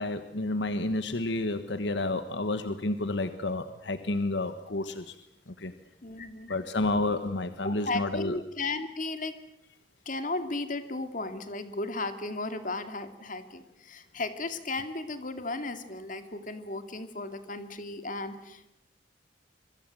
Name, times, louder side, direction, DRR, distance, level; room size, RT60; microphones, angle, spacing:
voice 1, 0.0-5.1 5.6-5.7 6.5-8.3, left 2 dB, 80° left, 10 dB, 1.4 m, -30 dB
voice 2, 6.0-6.5 7.6-9.4 10.1-18.7, left 2 dB, 45° left, 9 dB, 2.6 m, -35 dB
26.5 x 23.5 x 7.8 m, 0.80 s
head